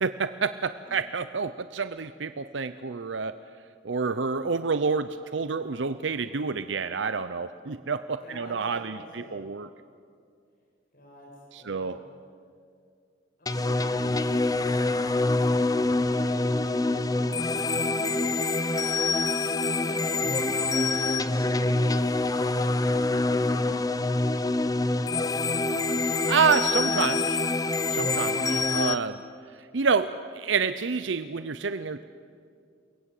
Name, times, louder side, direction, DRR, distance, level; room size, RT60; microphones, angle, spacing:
voice 1, 0.0-3.3 3.8-9.7 11.5-12.0 26.3-27.4 27.9-29.2 29.7-32.0, right 5 dB, 65° right, 12 dB, 0.7 m, -28 dB
voice 2, 8.2-9.4 10.9-11.3 11.6-12.0 13.4-14.2 14.7-19.1 19.8-23.7, equal, 50° left, -3 dB, 7.4 m, -46 dB
sound 1, 13.5-28.9, left 2 dB, 20° left, 0.7 m, -25 dB
29.0 x 22.5 x 8.3 m, 2.3 s
head